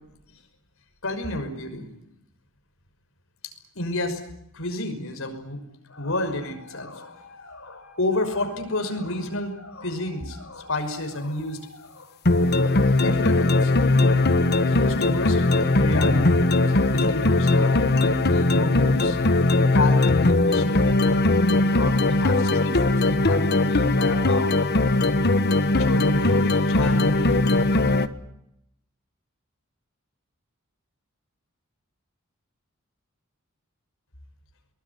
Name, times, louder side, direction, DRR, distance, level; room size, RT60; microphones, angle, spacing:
voice 1, 1.0-1.9 3.4-4.2 4.5-5.6 5.9-12.1 12.7-14.3 14.6-19.2 19.6-21.0 21.6-24.6 25.8-27.4, left 2 dB, 65° left, 6 dB, 5.9 m, -31 dB
sound 1, 12.2-28.1, left 2 dB, 50° left, 1.3 m, -20 dB
22.5 x 21.5 x 9.7 m, 0.78 s
head